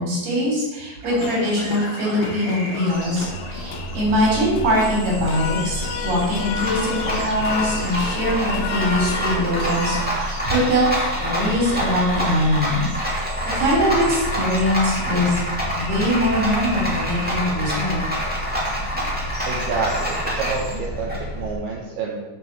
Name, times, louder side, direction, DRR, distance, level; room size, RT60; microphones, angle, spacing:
voice 1, 0.0-12.8 13.5-15.4 15.7-18.0, equal, 65° right, -4 dB, 5.2 m, -22 dB
sound 1, 1.0-20.8, right 2 dB, 45° right, 3.5 m, -37 dB
sound 2, 1.2-10.1, left 6 dB, 85° left, 2.8 m, -32 dB
Rattle, 2.9-21.5, equal, 5° right, 1.7 m, -27 dB
voice 2, 19.5-22.2, right 4 dB, 85° right, -4 dB, 3.3 m, -28 dB
8.2 x 5.7 x 7.4 m, 1.1 s
omnidirectional pair, 4.4 m